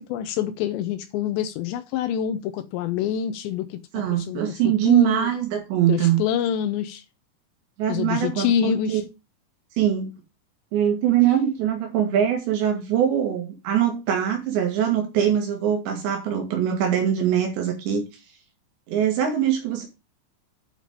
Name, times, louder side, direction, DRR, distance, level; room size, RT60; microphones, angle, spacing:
voice 1, 0.1-3.8 4.1-5.3 5.9-7.0 7.9-9.0, left 8 dB, 80° left, 2.9 m, -26 dB
voice 2, 3.9-6.2 7.8-9.0 9.8-10.1 10.7-18.1 18.9-19.9, right 10 dB, 80° right, 4.0 m, -22 dB
9.0 x 5.0 x 5.1 m
omnidirectional pair, 5.1 m